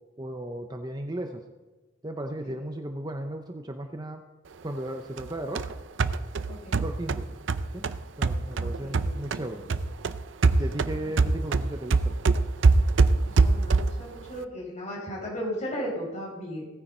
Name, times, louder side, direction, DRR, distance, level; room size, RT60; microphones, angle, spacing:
voice 1, 0.2-1.4 2.0-4.2 4.6-5.7 6.8-7.3 7.7-7.8 8.2-9.7 10.6-12.2, right 1 dB, 20° right, 5 dB, 0.7 m, -35 dB
sound 1, 5.2-9.4 9.7-14.1, right 3 dB, 70° right, 0.5 m, -24 dB
voice 2, 6.5-6.8 8.6-9.6 10.9-11.1 13.2-16.7, equal, 35° left, -3 dB, 5.1 m, -36 dB
17.5 x 9.7 x 4.4 m, 1.2 s
head